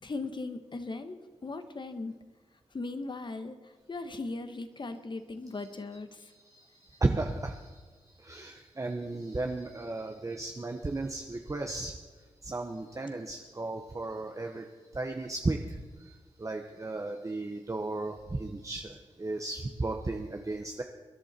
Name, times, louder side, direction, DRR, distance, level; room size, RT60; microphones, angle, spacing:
voice 1, 0.0-2.1 2.7-6.3, left 3 dB, 45° left, 9 dB, 1.4 m, -38 dB
voice 2, 6.3-12.0 12.4-14.7 14.9-20.8, right 2 dB, 30° right, 3 dB, 1.0 m, -35 dB
25.0 x 11.0 x 4.4 m, 1.4 s
cardioid pair, 70°, 11 cm